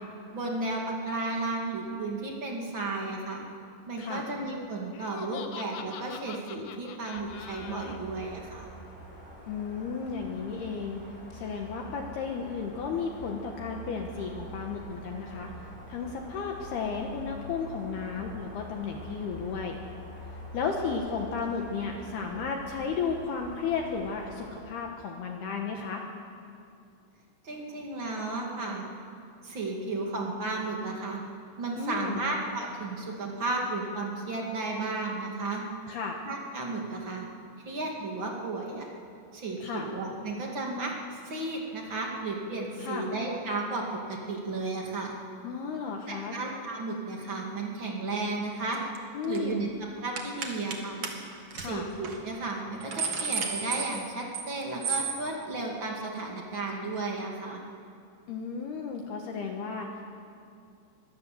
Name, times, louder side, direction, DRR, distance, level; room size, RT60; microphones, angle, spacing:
voice 1, 0.3-3.4 3.9-8.7 27.4-28.8 29.4-31.2 31.6-35.6 36.2-37.2 37.7-38.9 39.3-43.8 44.1-45.2 46.1-48.8 49.3-49.7 50.0-51.0 51.6-57.6, right 3 dB, 40° right, -1 dB, 1.9 m, -33 dB
Laughter, 4.9-8.0, left 8 dB, 85° left, 2.1 m, -44 dB
sound 1, 7.1-24.6, equal, 10° left, 6.2 m, -45 dB
voice 2, 9.5-11.0 11.3-15.5 15.9-19.8 20.5-26.0 31.8-32.2 35.9-36.2 39.6-39.9 42.8-43.1 45.4-46.4 49.1-49.7 51.6-51.9 58.3-60.0, left 5 dB, 70° left, 2 dB, 2.7 m, -34 dB
sound 2, 48.7-49.0 49.2-49.5 50.2-50.8 51.0-51.1 51.5-51.7 52.0-52.2 52.6-54.5 54.8-55.2, right 5 dB, 80° right, 1.3 m, -32 dB
23.5 x 17.5 x 7.8 m, 2.5 s
omnidirectional pair, 6.0 m